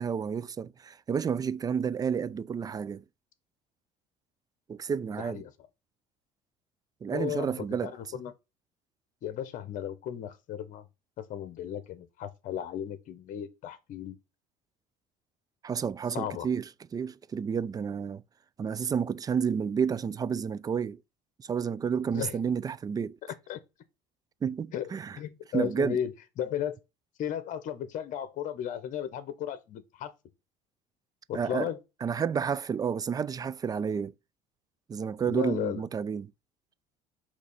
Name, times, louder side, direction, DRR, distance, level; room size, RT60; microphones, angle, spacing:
voice 1, 0.0-3.0 4.7-5.4 7.0-7.9 15.6-16.6 16.9-18.2 18.6-21.0 21.4-23.2 24.4-25.2 25.5-26.0 31.3-31.7 32.0-34.1 34.9-36.3, right 7 dB, 25° right, 0.3 m, -30 dB
voice 2, 5.2-5.5 7.1-8.3 9.2-10.8 11.2-14.2 16.1-16.5 22.1-22.4 23.5-23.6 24.7-26.8 27.2-30.1 31.3-31.8 35.2-35.8, left 10 dB, 60° left, 1.0 m, -35 dB
6.3 x 2.9 x 5.5 m
supercardioid pair, 100°, 15 cm